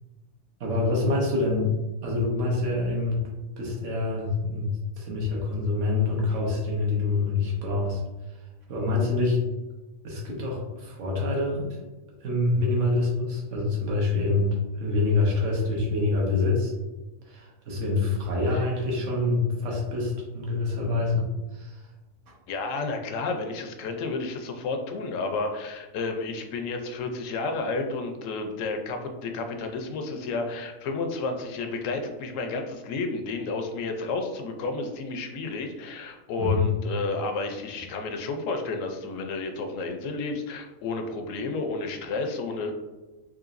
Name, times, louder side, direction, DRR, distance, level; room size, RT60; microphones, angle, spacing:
voice 1, 0.6-1.7 2.0-3.2 3.6-8.0 8.7-9.4 10.0-11.7 12.2-16.7 17.3-21.3 21.5-21.8 36.4-36.6, left 3 dB, 70° right, -2 dB, 1.2 m, -26 dB
voice 2, 22.5-42.7, left 3 dB, 75° left, 4 dB, 0.9 m, -31 dB
3.8 x 3.0 x 2.5 m, 1.1 s
omnidirectional pair, 1.4 m